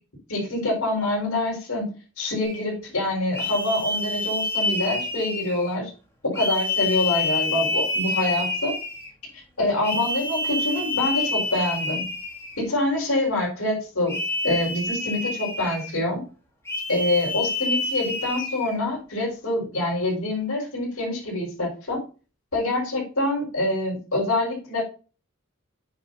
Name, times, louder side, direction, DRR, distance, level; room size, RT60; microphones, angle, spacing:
voice 1, 0.3-5.9 6.2-8.7 9.3-12.1 12.6-14.2 14.4-16.2 16.9-22.0 22.5-24.8, left 2 dB, 85° left, -5 dB, 4.8 m, -26 dB
sound 1, 2.4-2.7 3.3-5.7 6.3-9.1 9.8-12.6 14.1-16.0 16.6-18.7, left 2 dB, 15° left, 2.4 m, -28 dB
9.4 x 8.2 x 2.8 m, 0.35 s
head